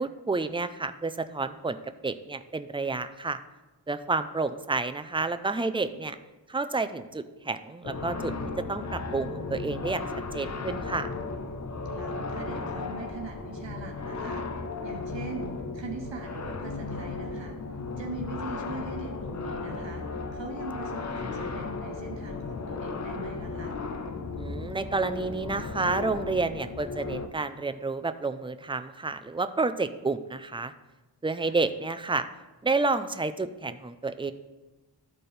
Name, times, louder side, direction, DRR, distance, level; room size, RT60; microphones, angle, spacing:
voice 1, 0.0-1.8 2.0-3.4 3.9-6.2 6.5-10.0 10.3-11.1 24.4-30.7 31.2-32.3 32.6-34.3, right 3 dB, 15° right, 11 dB, 0.3 m, -30 dB
sound 1, 7.8-27.3, left 3 dB, 40° left, 0.7 m, -35 dB
voice 2, 11.9-14.5 14.8-17.6 18.0-23.8 31.4-31.6, right 3 dB, 75° right, 2 dB, 0.9 m, -41 dB
12.0 x 4.3 x 3.3 m, 1.1 s
wide cardioid pair, 50°, 44 cm